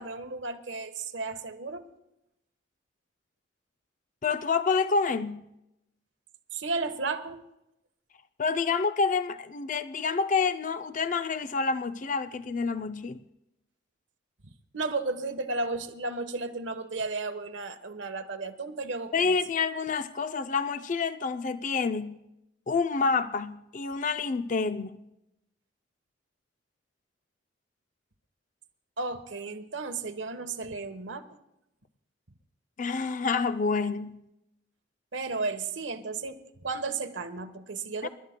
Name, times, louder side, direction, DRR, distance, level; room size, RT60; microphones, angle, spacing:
voice 1, 0.0-1.8 6.5-7.4 14.7-19.4 29.0-31.2 35.1-38.1, right 3 dB, 80° right, 1.1 m, -34 dB
voice 2, 4.2-5.5 8.4-13.2 19.1-22.2 22.7-25.0 32.8-34.2 38.0-38.1, left 4 dB, 45° left, 0.4 m, -28 dB
29.0 x 12.5 x 2.2 m
head